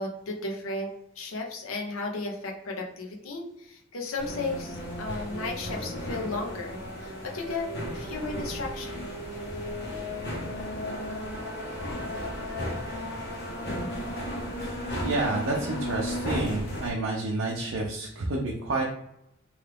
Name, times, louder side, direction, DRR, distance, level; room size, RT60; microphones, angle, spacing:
voice 1, 0.0-9.1, left 3 dB, 90° left, 1 dB, 0.7 m, -35 dB
sound 1, 4.2-16.9, equal, 50° left, 0.8 m, -34 dB
voice 2, 15.0-18.8, right 2 dB, 70° right, -2 dB, 0.6 m, -29 dB
3.1 x 2.4 x 3.3 m, 0.80 s
head